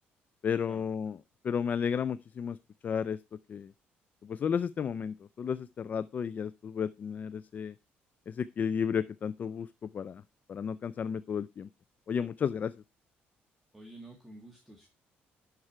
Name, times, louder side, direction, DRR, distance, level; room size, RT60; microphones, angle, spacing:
voice 1, 0.4-1.2 1.4-2.6 2.8-3.2 3.5-3.7 4.2-7.7 8.3-10.2 10.5-11.7 12.1-12.7, left 7 dB, 40° left, 0.4 m, -33 dB
voice 2, 13.7-14.9, right 1 dB, 5° right, 1.9 m, -50 dB
11.0 x 4.8 x 4.4 m
cardioid pair, 105°, 4 cm